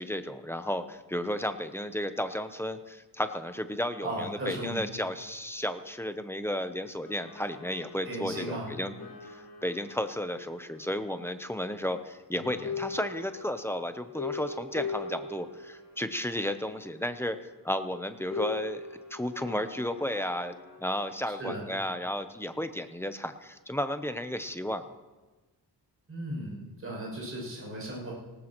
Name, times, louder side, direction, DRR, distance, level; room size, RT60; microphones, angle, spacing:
voice 1, 0.0-8.9 9.2-17.4 17.6-18.8 19.1-20.5 20.8-24.9, left 1 dB, 5° left, 9 dB, 0.6 m, -33 dB
voice 2, 4.0-4.9 8.0-8.7 12.3-12.6 21.4-21.7 26.1-28.1, right 1 dB, 35° right, -3 dB, 6.6 m, -36 dB
sound 1, 7.0-12.2 12.4-17.9 18.3-20.8, left 5 dB, 55° left, 3.7 m, -41 dB
19.0 x 18.5 x 3.0 m, 1.2 s
wide cardioid pair, 160°, 40 cm